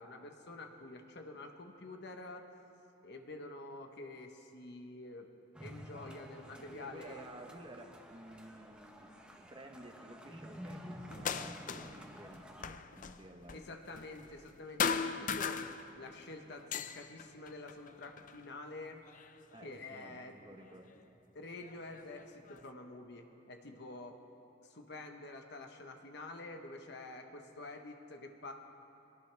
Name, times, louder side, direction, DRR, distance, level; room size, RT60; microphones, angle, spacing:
voice 1, 0.0-2.4 3.0-5.3 5.6-7.3 13.5-15.6 16.0-19.0 19.6-20.4 21.3-24.2 24.6-28.5, left 2 dB, 60° left, 3 dB, 1.1 m, -48 dB
sound 1, 5.5-12.6, equal, 5° right, 1.1 m, -50 dB
voice 2, 6.5-13.6 19.5-21.1, right 1 dB, 25° right, 4 dB, 1.2 m, -53 dB
sound 2, 11.1-12.0 12.3-14.5 14.8-16.2 16.5-18.4 19.1-20.0 20.9-21.0 21.6-22.6, left 6 dB, 40° left, 0.5 m, -38 dB
22.5 x 17.5 x 3.4 m, 2.9 s
head